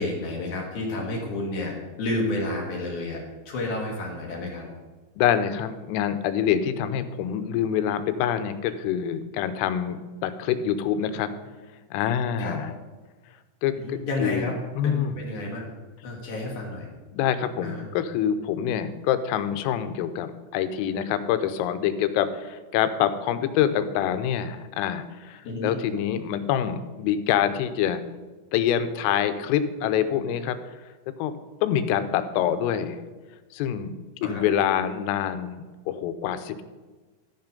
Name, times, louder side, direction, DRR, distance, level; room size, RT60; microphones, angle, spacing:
voice 1, 0.0-4.7 12.4-12.6 13.7-14.6 14.8-15.6 16.0-16.9 17.6-17.8 25.4-25.7 34.2-34.4, left 2 dB, 60° left, -2 dB, 2.0 m, -30 dB
voice 2, 5.2-11.3 11.9-12.7 13.6-14.5 14.8-15.2 17.1-28.1 28.5-30.6 31.2-31.3 31.6-33.0 33.5-33.9 34.2-36.6, left 9 dB, 90° left, 11 dB, 3.3 m, -26 dB
14.0 x 5.7 x 5.2 m, 1.3 s
omnidirectional pair, 5.8 m